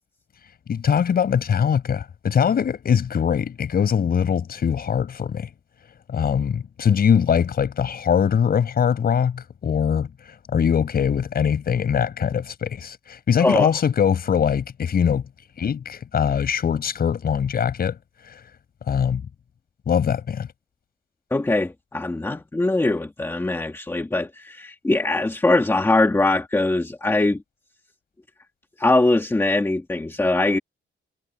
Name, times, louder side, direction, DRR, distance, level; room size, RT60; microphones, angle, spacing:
voice 1, 0.7-5.5 6.1-15.2 15.6-18.0 18.2-18.4 18.9-19.2 19.9-20.5, left 7 dB, 50° left, 5.5 m, -22 dB
voice 2, 21.3-27.4 28.8-30.6, left 2 dB, 10° left, 1.8 m, -21 dB
cardioid pair, 135°, 20 cm